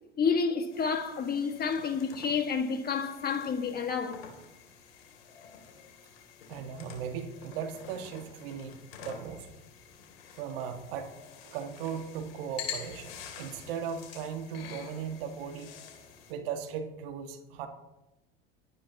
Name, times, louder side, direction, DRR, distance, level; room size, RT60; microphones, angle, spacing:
voice 1, 0.2-4.2, left 5 dB, 30° left, 1.8 m, -29 dB
sound 1, 0.7-16.3, left 7 dB, 90° left, 3.0 m, -47 dB
voice 2, 6.5-9.5 10.4-11.1 11.4-15.7 16.3-17.7, right 7 dB, 75° right, 1.7 m, -37 dB
27.5 x 9.8 x 2.9 m
supercardioid pair, 100°, 29 cm